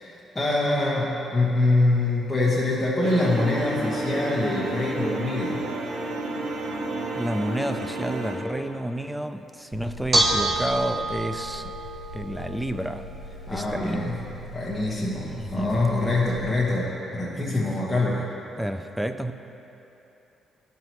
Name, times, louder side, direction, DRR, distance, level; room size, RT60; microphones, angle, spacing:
voice 1, 0.0-5.6 13.5-14.2 14.5-18.2, left 2 dB, 10° left, -8 dB, 1.4 m, -24 dB
sound 1, 3.0-8.4, right 2 dB, 80° right, 1.0 m, -31 dB
voice 2, 7.2-11.7 12.1-13.1 13.5-14.2 15.3-15.8 17.3-17.7 18.0-18.2 18.6-19.3, right 1 dB, 5° right, 9 dB, 0.3 m, -30 dB
Bell / Dishes pots and pans, 9.7-16.4, right 1 dB, 30° right, 1.0 m, -30 dB
13.5 x 5.6 x 3.1 m, 2.9 s
cardioid pair, 90°, 0 cm